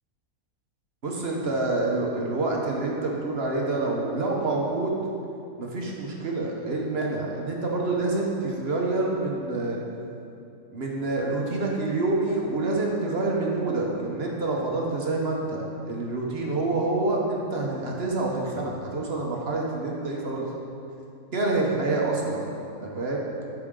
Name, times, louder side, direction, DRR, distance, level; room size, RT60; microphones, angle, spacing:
voice 1, 1.0-5.0 5.6-9.8 10.7-20.5 21.3-22.4 22.8-23.2, right 2 dB, 45° right, -2 dB, 1.2 m, -27 dB
13.5 x 5.2 x 3.7 m, 2.8 s
omnidirectional pair, 1.5 m